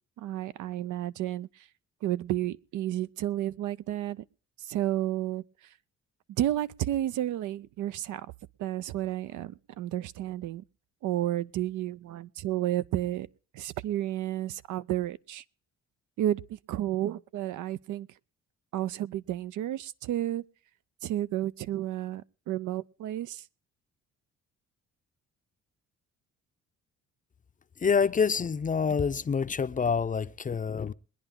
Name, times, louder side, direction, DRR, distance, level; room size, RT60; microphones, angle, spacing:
voice 1, 0.2-1.7 2.0-4.2 4.6-5.7 6.3-8.3 8.6-10.6 11.0-13.3 13.5-15.4 16.2-18.1 18.7-20.4 21.0-23.4, right 13 dB, 80° right, 0.6 m, -31 dB
voice 2, 27.8-30.9, left 6 dB, 25° left, 0.5 m, -27 dB
22.0 x 9.9 x 3.7 m
cardioid pair, 90°, 30 cm